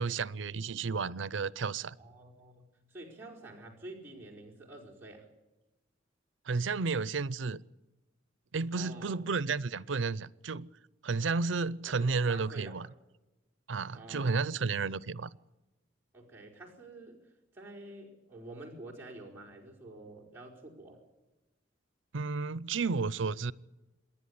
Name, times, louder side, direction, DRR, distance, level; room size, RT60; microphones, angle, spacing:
voice 1, 0.0-2.0 6.5-7.6 8.5-10.7 11.0-12.9 13.7-15.3 22.1-23.5, right 4 dB, 85° right, 0.6 m, -32 dB
voice 2, 2.0-5.3 8.7-9.2 11.9-12.9 13.9-14.7 16.1-17.2 17.5-21.0, right 2 dB, 15° right, 4.7 m, -49 dB
27.5 x 11.0 x 9.6 m
head